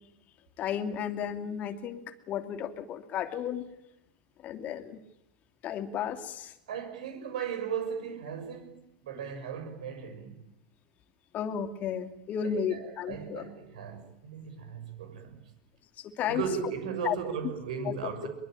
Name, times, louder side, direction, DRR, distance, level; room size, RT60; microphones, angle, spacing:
voice 1, 0.6-3.7 4.4-5.0 5.6-6.5 11.3-13.5 16.0-16.4 17.0-17.2 17.8-18.3, left 8 dB, 40° left, 2.7 m, -33 dB
voice 2, 6.7-10.4 12.4-15.4 16.3-18.3, right 7 dB, 70° right, 6.3 m, -37 dB
23.0 x 23.0 x 9.0 m
hypercardioid pair, 95°, 4 cm